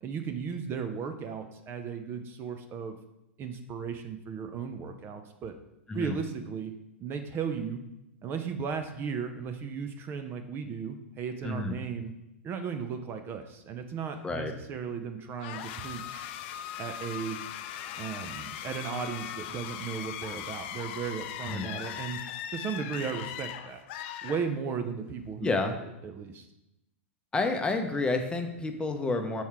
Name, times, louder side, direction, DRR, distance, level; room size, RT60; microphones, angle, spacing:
voice 1, 0.0-3.0 3.4-5.6 5.9-6.7 7.0-7.8 8.2-12.1 12.4-16.3 16.8-17.4 18.0-22.2 22.5-23.8 24.2-25.8 26.0-26.5, right 6 dB, 30° right, 7 dB, 0.6 m, -36 dB
voice 2, 11.4-11.8 14.2-14.5 21.5-21.7 25.4-25.7 27.3-29.4, left 3 dB, 15° left, 5 dB, 0.8 m, -29 dB
sound 1, 15.4-25.0, left 10 dB, 55° left, 0.5 m, -39 dB
5.5 x 4.5 x 4.8 m, 0.90 s
hypercardioid pair, 110°, 7 cm